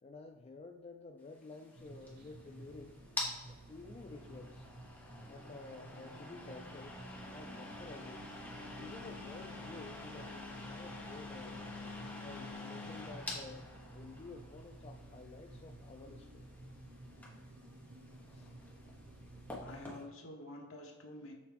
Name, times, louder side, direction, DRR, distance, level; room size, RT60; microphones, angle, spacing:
voice 1, 0.0-3.0 3.4-4.7 5.3-7.0 7.3-8.3 8.7-11.6 12.2-16.5 18.3-18.5, left 3 dB, 30° left, 4 dB, 0.3 m, -52 dB
sound 1, 1.3-20.0, left 2 dB, 10° left, 1.3 m, -47 dB
sound 2, 1.8-19.8, right 2 dB, 50° right, 0.7 m, -54 dB
voice 2, 19.6-21.3, left 1 dB, 70° left, 0 dB, 1.4 m, -48 dB
7.1 x 4.6 x 3.5 m, 1.2 s
head